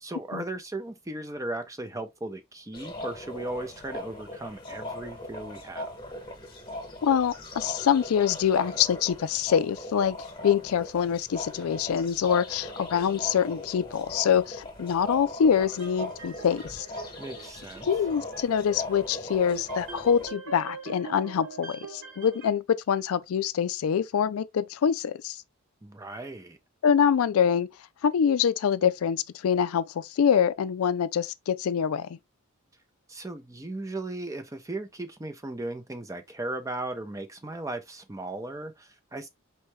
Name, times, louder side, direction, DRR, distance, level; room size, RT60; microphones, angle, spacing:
voice 1, 0.0-6.0 17.2-17.9 25.8-26.6 33.1-39.3, right 2 dB, 15° right, 0.5 m, -37 dB
sound 1, 2.7-20.3, left 1 dB, 20° left, 1.2 m, -39 dB
voice 2, 7.0-10.2 10.4-16.9 17.9-25.4 26.8-27.7 28.0-32.2, left 8 dB, 75° left, 0.4 m, -25 dB
sound 2, 15.5-22.5, right 5 dB, 60° right, 1.4 m, -43 dB
4.3 x 3.2 x 3.1 m
head